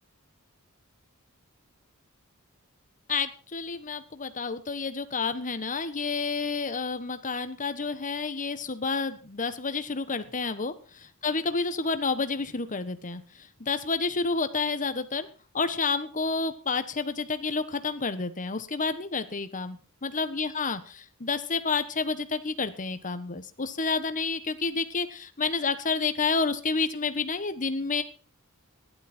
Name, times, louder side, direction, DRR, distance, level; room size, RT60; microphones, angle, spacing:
voice 1, 3.1-10.7 11.2-15.3 15.5-28.0, left 4 dB, 35° left, 11 dB, 1.3 m, -30 dB
15.5 x 11.5 x 4.4 m, 0.36 s
head